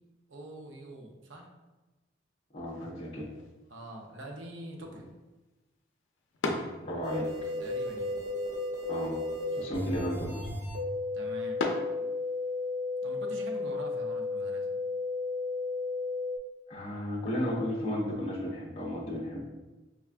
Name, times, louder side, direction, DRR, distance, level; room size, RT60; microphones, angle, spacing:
voice 1, 0.3-1.5 3.7-5.1 7.6-8.2 11.1-11.6 13.0-14.8, right 1 dB, 75° right, 1 dB, 0.6 m, -44 dB
voice 2, 2.5-3.3 6.4-7.3 8.9-9.2 9.5-10.5 16.7-19.4, equal, 30° left, -5 dB, 0.5 m, -34 dB
sound 1, 2.7-12.7, left 2 dB, 80° left, 0.5 m, -42 dB
sound 2, 7.0-16.4, left 3 dB, 30° right, 0.8 m, -33 dB
4.8 x 2.2 x 2.4 m, 1.1 s
head